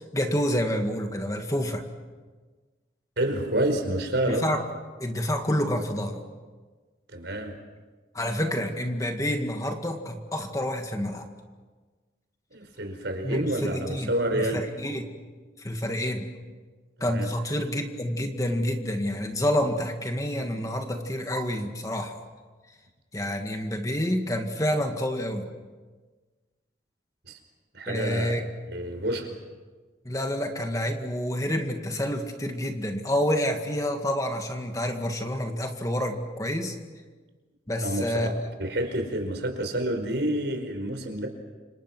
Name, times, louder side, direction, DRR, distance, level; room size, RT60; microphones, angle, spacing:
voice 1, 0.1-1.8 4.3-4.6 5.0-6.2 8.1-11.3 13.2-15.1 15.6-16.3 17.0-22.2 23.1-25.5 27.9-28.4 30.1-36.8 37.7-38.3, equal, 20° left, 4 dB, 2.0 m, -28 dB
voice 2, 3.2-4.5 7.1-7.5 12.5-14.6 17.1-17.3 27.3-27.4 27.7-28.3 28.7-29.3 37.8-38.3 38.6-41.3, right 1 dB, 70° right, 5 dB, 4.9 m, -28 dB
30.0 x 27.0 x 6.2 m, 1.4 s
head